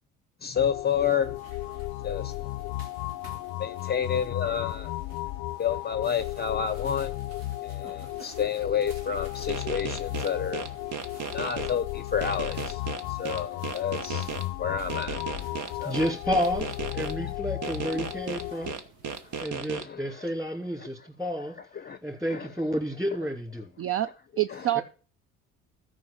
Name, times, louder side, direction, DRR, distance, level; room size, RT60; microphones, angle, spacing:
voice 1, 0.4-1.4 2.0-2.6 3.6-5.1 5.6-7.3 7.6-12.8 13.1-15.2 15.8-16.0 19.2-20.3 20.8-20.9 21.6-22.0 22.3-22.5 24.5-24.7, left 8 dB, 30° left, 0.6 m, -30 dB
sound 1, 0.6-18.7, left 18 dB, 85° left, 0.5 m, -35 dB
sound 2, 0.8-19.4, right 2 dB, 85° right, 2.6 m, -53 dB
sound 3, 9.5-11.7 12.2-14.4 14.9-17.1 17.6-19.8, right 6 dB, 65° right, 1.4 m, -34 dB
voice 2, 15.8-18.7 19.4-21.6 22.0-23.7 24.8-24.9, equal, 10° right, 2.9 m, -30 dB
voice 3, 23.8-24.1 24.4-24.8, right 14 dB, 45° right, 0.4 m, -26 dB
13.5 x 5.1 x 7.1 m
cardioid pair, 90°, 33 cm